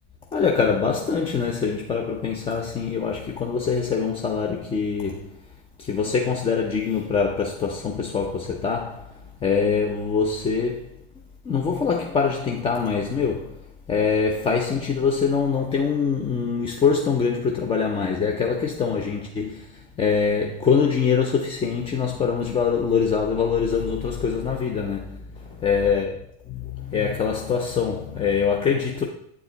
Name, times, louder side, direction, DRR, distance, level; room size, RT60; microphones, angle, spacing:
voice 1, 0.3-5.3 5.8-10.9 11.4-25.3 25.6-26.1 26.5-29.0, left 6 dB, 20° left, 0.6 m, -24 dB
8.3 x 4.8 x 4.0 m
hypercardioid pair, 110°, 30 cm